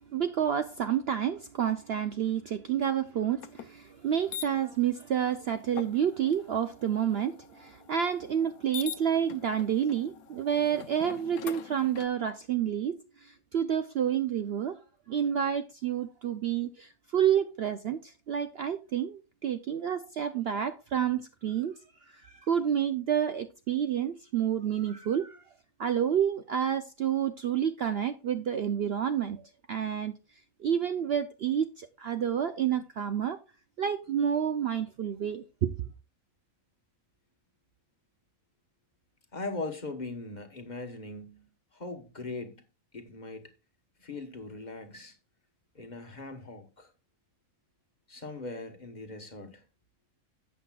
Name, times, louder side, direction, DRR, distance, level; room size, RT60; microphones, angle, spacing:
voice 1, 0.0-14.8 15.1-21.8 22.1-25.4 25.8-30.1 30.6-33.4 33.8-35.7, right 9 dB, 60° right, 0.7 m, -29 dB
sound 1, 3.4-3.7 4.3-4.5 5.7-12.1, left 10 dB, 90° left, 1.2 m, -44 dB
voice 2, 39.3-42.6 42.9-43.5 44.0-45.2 45.7-46.9 48.1-49.6, left 3 dB, 35° left, 1.3 m, -40 dB
13.5 x 8.4 x 2.3 m
omnidirectional pair, 1.5 m